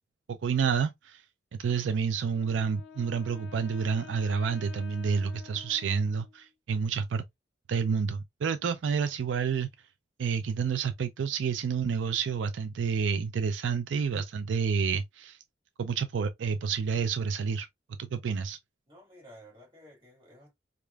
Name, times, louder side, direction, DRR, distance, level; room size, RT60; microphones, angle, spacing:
voice 1, 0.3-1.2 1.5-7.2 7.7-9.7 10.2-15.4 15.8-17.7 18.0-18.6, right 6 dB, 85° right, 0.4 m, -29 dB
Wind instrument woodwind instrument, 2.3-6.5, left 7 dB, 65° left, 0.5 m, -49 dB
voice 2, 18.9-20.5, equal, 25° right, 2.1 m, -53 dB
4.8 x 2.4 x 2.2 m
head